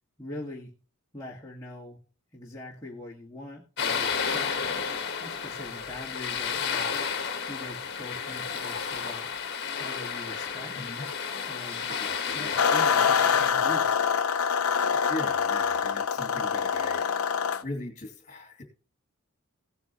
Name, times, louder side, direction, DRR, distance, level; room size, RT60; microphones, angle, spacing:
voice 1, 0.2-0.7 1.1-2.0 2.3-4.7 5.2-7.0 7.5-9.3 9.8-10.8 11.5-11.9 12.3-13.9, left 1 dB, 15° left, -5 dB, 1.8 m, -42 dB
sound 1, 3.8-13.5, left 6 dB, 50° left, 1.5 m, -32 dB
voice 2, 10.7-11.1 11.8-12.6 14.4-17.3 17.6-18.6, left 1 dB, 35° left, 5 dB, 2.6 m, -40 dB
sound 2, 12.6-17.6, left 7 dB, 80° left, 0.7 m, -25 dB
16.5 x 9.1 x 3.0 m, 0.35 s
head